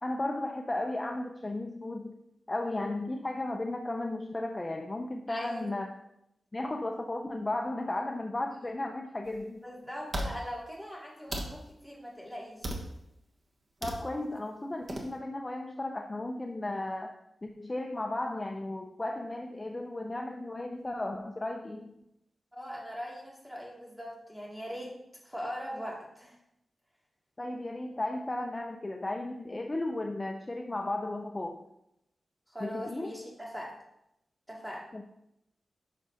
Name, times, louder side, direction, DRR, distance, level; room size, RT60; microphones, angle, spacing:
voice 1, 0.0-2.2 2.5-5.9 6.5-9.6 13.8-17.2 17.4-21.9 27.4-31.7 32.6-33.1 34.9-35.0, left 2 dB, 25° left, 3 dB, 0.5 m, -35 dB
voice 2, 5.3-5.7 9.6-12.7 22.5-24.9 25.2-26.4 32.5-33.7 34.5-34.9, equal, 5° right, -3 dB, 2.2 m, -41 dB
sound 1, 9.3-9.4 10.1-10.3 11.3-11.5 12.6-12.9 13.8-14.0 14.9-15.1, right 1 dB, 40° right, 1.2 m, -34 dB
11.0 x 6.0 x 2.7 m, 0.81 s
wide cardioid pair, 125°, 0 cm